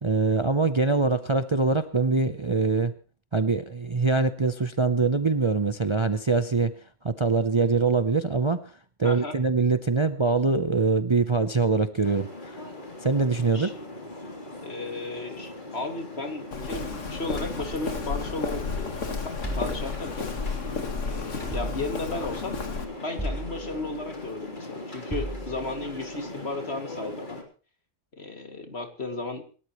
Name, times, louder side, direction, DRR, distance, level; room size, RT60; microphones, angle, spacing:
voice 1, 0.0-2.9 3.3-6.7 7.0-8.7 9.0-12.6 13.0-13.7, right 3 dB, 30° right, 11 dB, 0.7 m, -23 dB
voice 2, 9.0-9.4 13.5-13.7 14.6-20.3 21.1-22.6 23.0-27.4 28.1-29.4, left 2 dB, 55° left, 6 dB, 2.7 m, -34 dB
sound 1, 12.0-27.4, left 1 dB, 40° left, 3.6 m, -40 dB
Walk footsteps, 16.5-22.8, left 4 dB, 80° left, 2.1 m, -33 dB
sound 2, 19.4-20.8 21.5-22.3 23.2-24.1 25.1-25.9, equal, 15° left, 7.4 m, -36 dB
27.5 x 13.0 x 3.1 m, 0.38 s
omnidirectional pair, 1.3 m